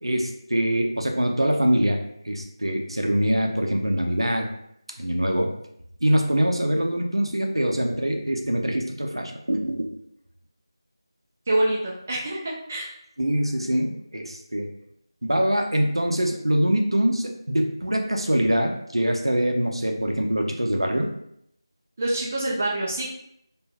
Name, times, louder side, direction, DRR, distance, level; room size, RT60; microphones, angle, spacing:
voice 1, 0.0-2.0 2.2-4.5 5.0-5.5 6.0-9.9 13.2-14.7 15.2-21.1, equal, 80° right, 2 dB, 0.5 m, -24 dB
voice 2, 11.5-12.9 22.0-23.0, right 1 dB, 20° right, -4 dB, 0.3 m, -26 dB
3.4 x 2.5 x 2.3 m, 0.74 s
figure-of-eight pair, 165°, 3 cm